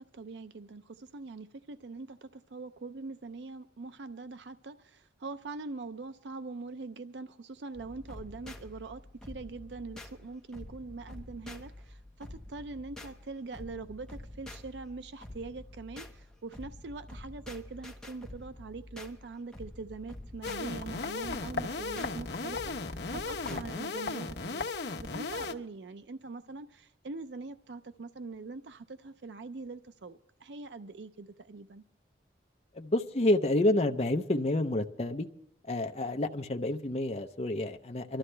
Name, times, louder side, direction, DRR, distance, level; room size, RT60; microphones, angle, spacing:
voice 1, 0.1-24.7 25.0-31.8, right 3 dB, 80° right, 0.5 m, -43 dB
sound 1, 7.7-23.6, left 1 dB, 5° left, 1.1 m, -48 dB
sound 2, 20.4-25.5, left 4 dB, 70° left, 1.0 m, -36 dB
voice 2, 32.7-35.3 35.6-38.2, left 1 dB, 35° left, 0.6 m, -29 dB
25.0 x 13.0 x 3.3 m
head